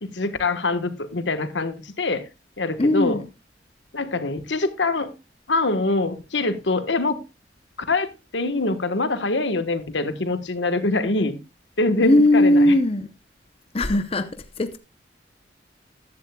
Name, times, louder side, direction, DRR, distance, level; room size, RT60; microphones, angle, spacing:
voice 1, 0.0-2.2 2.6-3.2 3.9-5.1 5.5-7.2 7.9-11.4 11.8-12.7, left 2 dB, 85° left, 1.3 m, -24 dB
voice 2, 2.8-3.2 12.0-13.1 13.7-14.8, left 1 dB, 30° left, 0.7 m, -19 dB
14.5 x 11.0 x 2.3 m
head